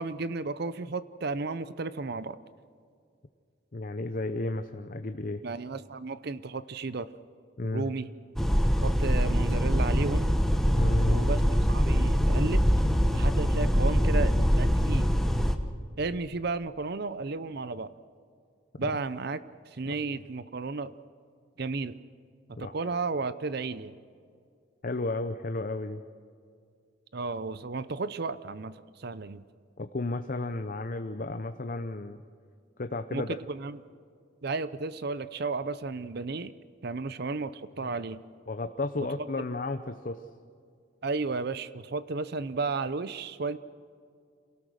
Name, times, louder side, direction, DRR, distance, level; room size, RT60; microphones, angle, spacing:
voice 1, 0.0-2.4 5.4-7.1 7.7-8.1 8.8-10.3 11.1-12.6 13.1-15.1 16.0-17.9 18.8-19.4 19.7-20.9 21.6-22.0 22.6-23.9 27.1-29.4 33.1-33.8 34.4-36.5 36.8-38.2 41.0-43.6, right 3 dB, 55° right, 15 dB, 0.6 m, -33 dB
voice 2, 3.7-5.4 7.6-7.9 10.7-11.2 18.8-18.9 19.9-20.0 22.6-22.7 24.8-26.0 29.8-32.2 32.8-33.4 37.8-37.9 38.5-40.2, left 2 dB, 45° left, 8 dB, 0.7 m, -33 dB
sound 1, 8.4-15.6, equal, ahead, 1.0 m, -24 dB
27.0 x 18.0 x 6.4 m, 2.3 s
head